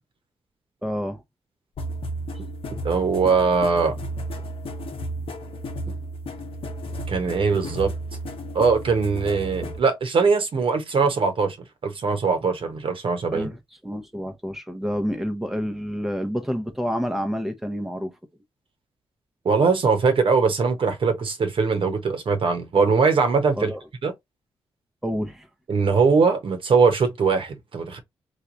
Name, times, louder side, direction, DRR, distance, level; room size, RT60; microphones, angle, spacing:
voice 1, 0.8-1.2 13.3-18.1 23.6-23.8 25.0-25.5, equal, 5° right, 0.7 m, -28 dB
sound 1, 1.8-9.8, right 1 dB, 65° left, 1.0 m, -33 dB
voice 2, 2.8-4.0 7.1-7.9 8.5-11.6 11.8-13.5 19.4-23.7 24.0-24.1 25.7-28.0, right 5 dB, 60° right, 1.1 m, -21 dB
3.1 x 2.5 x 3.8 m
cardioid pair, 60°, 10 cm